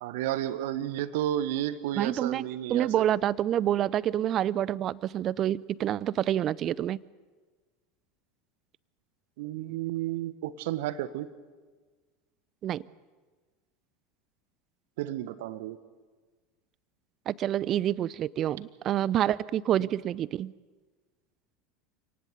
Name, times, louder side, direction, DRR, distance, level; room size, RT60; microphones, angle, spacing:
voice 1, 0.0-3.0 9.4-11.3 15.0-15.8 19.8-19.9, right 12 dB, 60° right, 14 dB, 1.3 m, -32 dB
voice 2, 2.0-7.0 12.6-12.8 17.3-20.5, right 11 dB, 40° right, 22 dB, 0.6 m, -28 dB
28.0 x 19.0 x 6.9 m, 1.4 s
figure-of-eight pair, 75°, 0 cm